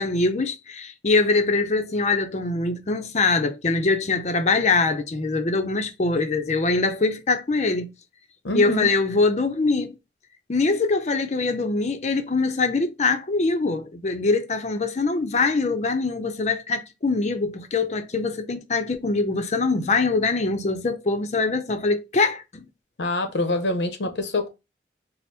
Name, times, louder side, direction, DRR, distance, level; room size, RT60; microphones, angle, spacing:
voice 1, 0.0-7.9 8.5-9.9 10.5-22.6, left 3 dB, 40° left, 0.5 m, -23 dB
voice 2, 8.4-8.9 23.0-24.5, left 1 dB, 80° left, 0.7 m, -25 dB
4.3 x 2.1 x 3.2 m
head